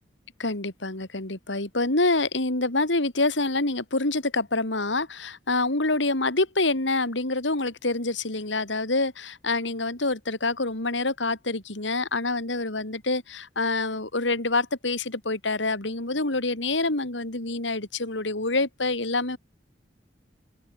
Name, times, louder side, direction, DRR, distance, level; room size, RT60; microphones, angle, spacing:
voice 1, 0.4-19.4, left 2 dB, 80° left, 3.5 m, -26 dB
open air
head